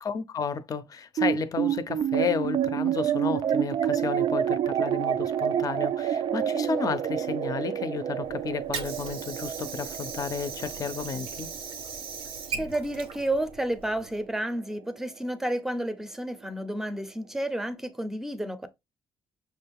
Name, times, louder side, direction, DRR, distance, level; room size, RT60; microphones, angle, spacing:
voice 1, 0.0-11.5, left 5 dB, 40° left, 0.6 m, -32 dB
sound 1, 1.2-13.8, right 9 dB, 50° right, 0.3 m, -29 dB
Water / Sink (filling or washing), 8.2-14.2, right 5 dB, 90° right, 0.8 m, -39 dB
voice 2, 12.5-18.7, right 1 dB, 5° right, 0.6 m, -31 dB
6.2 x 2.3 x 3.4 m
cardioid pair, 110°, 9 cm